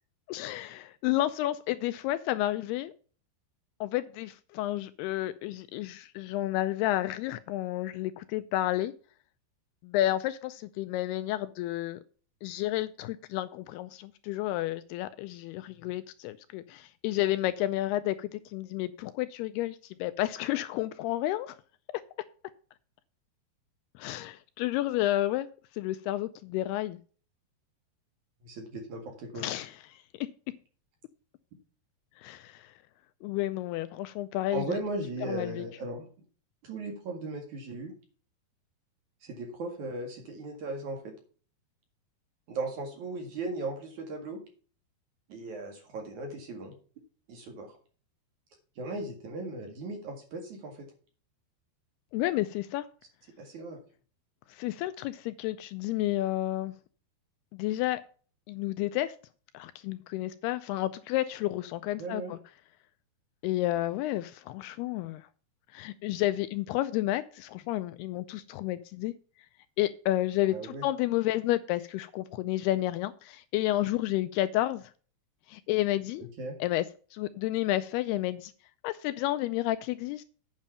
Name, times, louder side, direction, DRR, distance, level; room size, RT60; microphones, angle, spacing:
voice 1, 0.3-2.9 3.8-8.9 9.8-12.0 12.4-21.6 24.0-25.5 25.7-27.0 29.4-30.0 32.2-32.7 33.2-34.7 35.3-35.6 52.1-52.9 54.5-56.7 57.5-58.0 58.5-59.2 59.5-62.4 63.4-65.3 65.7-69.1 69.8-74.8 75.5-76.3 76.6-76.9 77.1-78.5 78.8-80.2, left 15 dB, 80° left, 2.4 m, -31 dB
voice 2, 28.4-29.5 34.5-36.1 36.6-37.9 39.2-41.2 42.5-44.4 45.3-46.7 47.3-47.8 48.8-50.9 53.4-53.8 62.0-62.3 70.5-70.8 76.2-76.6, right 2 dB, 50° right, 2.9 m, -37 dB
9.0 x 6.3 x 5.6 m
omnidirectional pair, 4.8 m